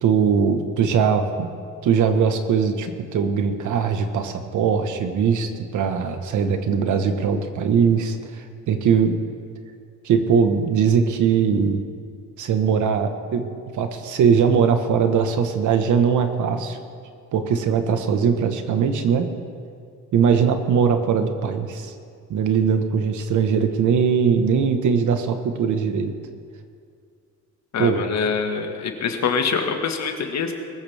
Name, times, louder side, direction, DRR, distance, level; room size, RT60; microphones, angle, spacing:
voice 1, 0.0-1.5 1.8-9.1 10.0-11.8 12.4-13.5 13.7-16.8 17.3-19.3 20.1-21.9 22.3-26.1 27.8-28.0, right 6 dB, 75° right, 7 dB, 1.4 m, -20 dB
voice 2, 27.7-30.5, left 6 dB, 65° left, 4 dB, 1.8 m, -24 dB
22.0 x 14.0 x 3.6 m, 2.3 s
cardioid pair, 90°, 30 cm